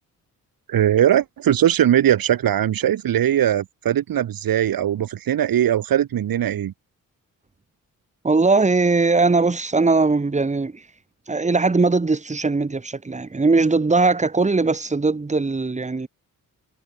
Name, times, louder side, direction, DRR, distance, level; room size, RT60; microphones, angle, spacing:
voice 1, 0.7-6.7, right 11 dB, 85° right, 1.9 m, -20 dB
voice 2, 8.2-10.9 11.3-16.1, right 3 dB, 20° right, 2.5 m, -20 dB
wide cardioid pair, 140°, 34 cm